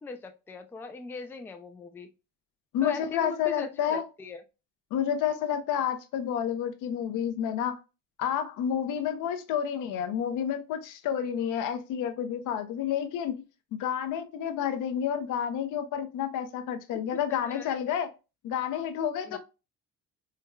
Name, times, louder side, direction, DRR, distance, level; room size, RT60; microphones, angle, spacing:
voice 1, 0.0-2.1 2.8-4.4 17.3-17.8 19.3-19.4, left 4 dB, 10° left, 0.3 m, -40 dB
voice 2, 2.7-4.1 4.9-7.8 8.2-13.3 13.8-18.1 18.4-19.4, left 9 dB, 80° left, 0.7 m, -30 dB
4.6 x 2.3 x 2.2 m
cardioid pair, 125°, 31 cm